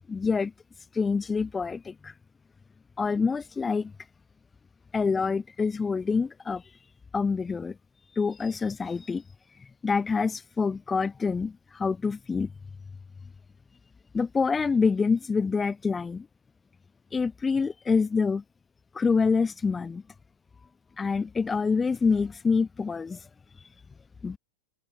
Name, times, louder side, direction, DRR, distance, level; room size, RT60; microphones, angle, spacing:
voice 1, 0.1-0.5 1.0-2.1 3.0-3.9 4.9-6.6 7.1-7.7 8.2-9.2 9.8-12.5 14.1-16.2 17.1-18.4 19.0-20.0 21.0-23.2 24.2-24.4, left 5 dB, 15° left, 0.6 m, -26 dB
figure-of-eight pair, 90°, 0 cm